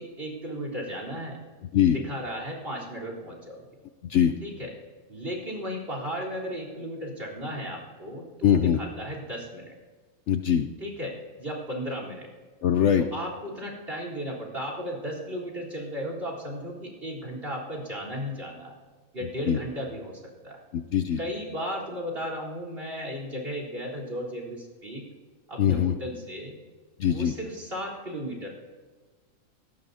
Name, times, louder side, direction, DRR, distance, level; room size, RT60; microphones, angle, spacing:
voice 1, 0.0-1.4 1.9-3.6 4.4-4.7 5.1-9.7 10.8-12.3 13.0-18.8 19.1-20.6 21.2-25.0 25.5-26.6 27.1-28.5, equal, 40° right, -1 dB, 4.1 m, -35 dB
voice 2, 4.0-4.3 8.4-8.8 10.3-10.7 12.6-13.0 19.5-19.6 20.7-21.2 25.6-25.9 27.0-27.3, left 9 dB, 65° left, 7 dB, 0.8 m, -22 dB
24.0 x 18.0 x 2.8 m, 1.4 s
omnidirectional pair, 1.5 m